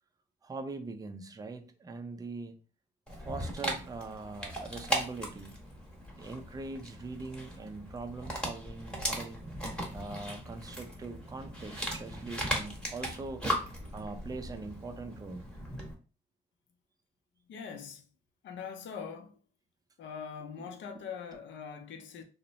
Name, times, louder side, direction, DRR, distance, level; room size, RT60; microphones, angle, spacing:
voice 1, 0.4-2.6 3.1-5.6 6.1-9.4 9.9-13.4 13.9-15.5 20.6-20.8, right 3 dB, 20° right, 0.4 m, -42 dB
Dog, 3.1-15.9, equal, 5° left, 0.9 m, -38 dB
voice 2, 17.5-18.0 18.4-19.4 20.0-22.2, left 6 dB, 70° left, 0.6 m, -42 dB
2.6 x 2.1 x 3.0 m
cardioid pair, 90°, 20 cm